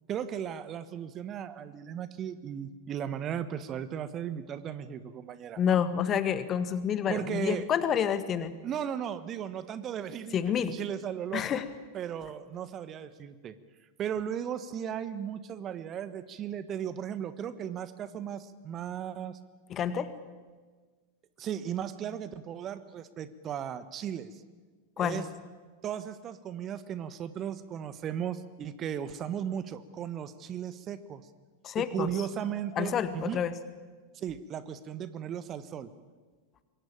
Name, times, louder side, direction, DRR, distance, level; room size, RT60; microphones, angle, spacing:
voice 1, 0.1-5.6 7.1-7.7 8.6-11.6 11.9-13.5 14.0-19.4 21.4-24.4 25.0-25.2 25.8-31.2 31.8-33.4 34.1-35.9, right 9 dB, 30° right, 13 dB, 1.4 m, -36 dB
voice 2, 5.6-8.5 10.3-10.8 11.3-11.6 19.7-20.1 25.0-25.2 31.6-32.1 32.8-33.5, left 8 dB, 30° left, 12 dB, 1.7 m, -28 dB
26.0 x 22.5 x 8.9 m, 1.4 s
figure-of-eight pair, 90°, 0 cm